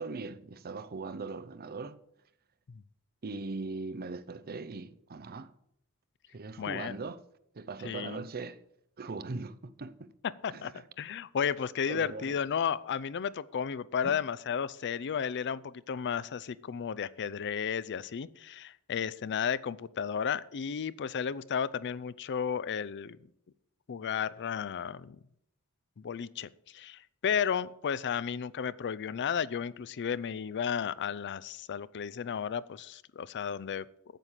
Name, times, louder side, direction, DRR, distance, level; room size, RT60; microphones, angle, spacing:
voice 1, 0.0-2.0 3.2-5.5 6.3-7.2 7.5-8.6 9.0-10.1 10.5-10.8 11.9-12.4 14.0-14.2, right 3 dB, 45° right, 0.6 m, -40 dB
voice 2, 6.6-7.0 7.8-8.2 10.4-10.7 11.0-23.2 23.9-25.2 26.0-33.8, left 7 dB, 50° left, 0.4 m, -33 dB
9.1 x 7.3 x 8.2 m
head